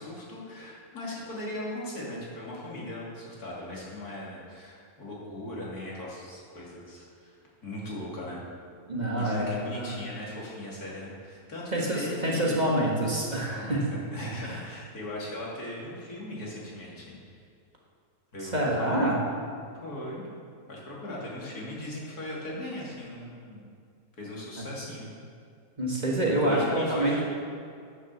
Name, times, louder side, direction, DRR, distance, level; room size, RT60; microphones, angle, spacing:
voice 1, 0.0-7.4 7.6-8.4 9.2-12.6 13.5-17.4 18.3-19.0 19.8-20.2 20.7-23.6 24.2-25.1 26.5-27.2, left 1 dB, 90° left, -5 dB, 3.2 m, -39 dB
voice 2, 8.9-10.0 11.7-13.9 14.4-14.6 18.4-19.2 24.6-24.7 25.8-27.2, right 1 dB, 30° right, -3 dB, 1.8 m, -27 dB
9.5 x 7.4 x 7.0 m, 2.3 s
omnidirectional pair, 1.6 m